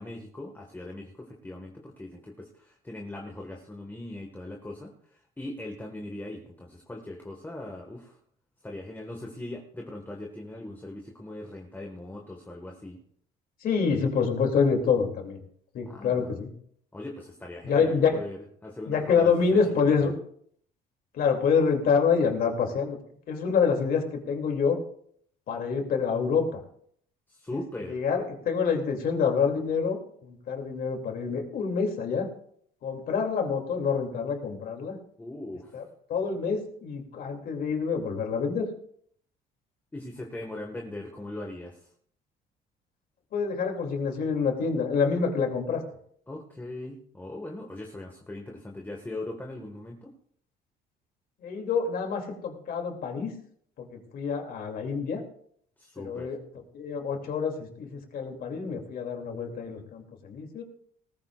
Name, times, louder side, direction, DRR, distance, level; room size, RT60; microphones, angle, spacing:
voice 1, 0.0-8.2 8.6-13.0 15.9-16.4 16.9-19.6 20.0-20.1 27.3-28.0 35.2-35.8 39.9-41.9 46.3-50.1 55.8-56.3, left 1 dB, 10° left, 1 dB, 1.7 m, -40 dB
voice 2, 13.6-15.4 15.7-16.5 17.6-18.2 18.9-20.1 21.1-23.0 23.3-24.8 25.5-26.6 27.5-27.6 27.9-32.3 32.8-35.0 35.7-35.8 36.1-38.7 43.3-45.8 51.4-53.3 53.8-55.2 56.0-56.4 56.7-60.6, left 5 dB, 60° left, 3 dB, 2.9 m, -27 dB
18.5 x 14.5 x 2.5 m, 0.63 s
cardioid pair, 110°, 17 cm